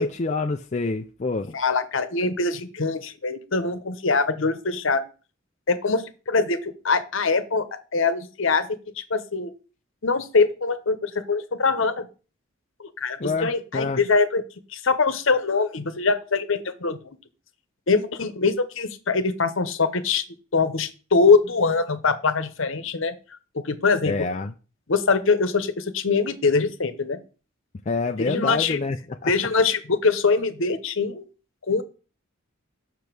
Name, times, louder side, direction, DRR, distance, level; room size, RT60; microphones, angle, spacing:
voice 1, 0.0-1.6 13.2-14.0 24.0-24.5 27.9-29.3, left 3 dB, 35° left, 0.4 m, -27 dB
voice 2, 1.5-5.0 5.7-7.7 7.9-8.7 9.0-9.5 10.0-12.1 12.8-14.4 14.7-17.0 17.9-20.2 20.5-23.1 23.5-24.3 24.9-27.2 28.2-28.8 29.2-31.3 31.7-31.8, left 4 dB, 70° left, 0.9 m, -23 dB
6.7 x 5.2 x 6.0 m
head